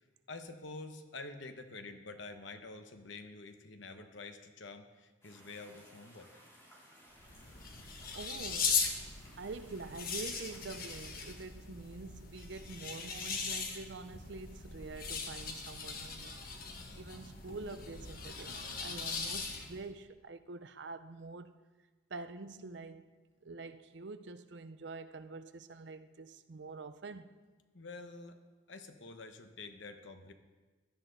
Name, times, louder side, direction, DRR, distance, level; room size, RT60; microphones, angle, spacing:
voice 1, 0.3-6.3 27.7-28.4 28.7-30.3, left 3 dB, 70° left, 1.0 m, -48 dB
sound 1, 5.2-11.4, equal, 15° left, 3.5 m, -60 dB
sound 2, 7.1-19.9, left 5 dB, 45° left, 1.4 m, -39 dB
voice 2, 8.1-8.9 9.4-16.4 16.9-21.5 22.1-23.1 23.4-27.4, right 3 dB, 65° right, 0.6 m, -46 dB
16.0 x 11.5 x 4.0 m
head